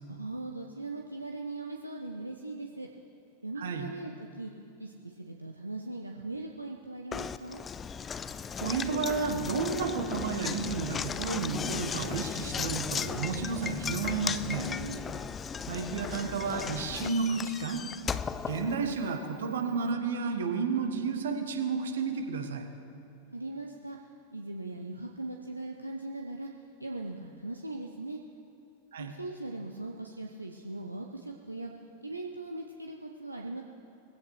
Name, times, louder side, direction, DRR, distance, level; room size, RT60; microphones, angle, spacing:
voice 1, 0.1-2.9 3.4-4.5 4.8-7.6 14.4-15.3 23.3-24.0 24.3-26.5 26.8-28.2 29.0-31.7 32.0-33.6, right 2 dB, 85° right, 2 dB, 0.7 m, -40 dB
voice 2, 3.6-3.9 8.6-14.6 15.7-17.8 18.5-22.6 28.9-29.1, right 5 dB, 65° right, 5 dB, 1.4 m, -32 dB
Knock, 7.1-19.3, left 6 dB, 20° left, 0.4 m, -36 dB
19.5 x 16.0 x 3.3 m, 2.9 s
figure-of-eight pair, 90°, 0 cm